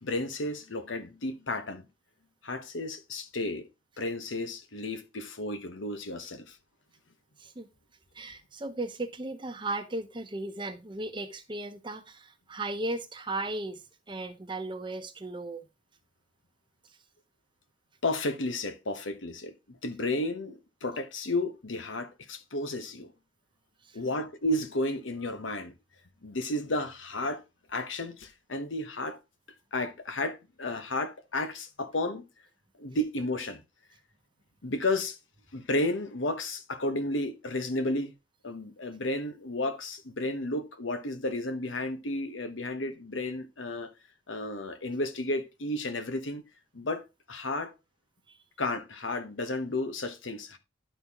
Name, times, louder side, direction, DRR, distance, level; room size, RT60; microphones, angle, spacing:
voice 1, 0.0-1.8 2.4-3.7 4.0-6.6 18.0-23.1 23.9-25.7 26.2-27.4 27.7-29.2 29.7-32.2 32.8-33.6 34.6-35.2 35.5-38.1 38.4-43.9 44.3-46.4 46.7-47.7 48.6-50.6, left 2 dB, 85° left, 1.1 m, -32 dB
voice 2, 8.1-15.7 23.9-24.0 48.3-48.4, right 2 dB, 25° right, 0.8 m, -36 dB
11.5 x 4.3 x 3.6 m
head